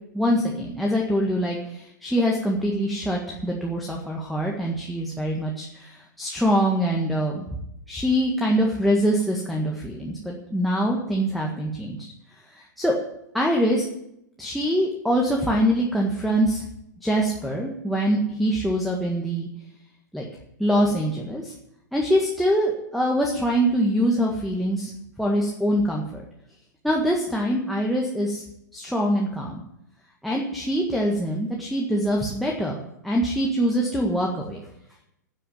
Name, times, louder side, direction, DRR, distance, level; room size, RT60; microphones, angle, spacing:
voice 1, 0.1-7.4 7.9-12.0 12.5-12.9 13.3-13.9 14.4-16.6 17.0-19.5 20.1-20.2 20.6-21.6 21.9-24.9 25.2-26.2 26.8-28.4 28.7-29.6 30.2-34.6, equal, ahead, 0 dB, 1.7 m, -24 dB
10.0 x 8.5 x 9.3 m, 0.80 s
figure-of-eight pair, 100°, 10 cm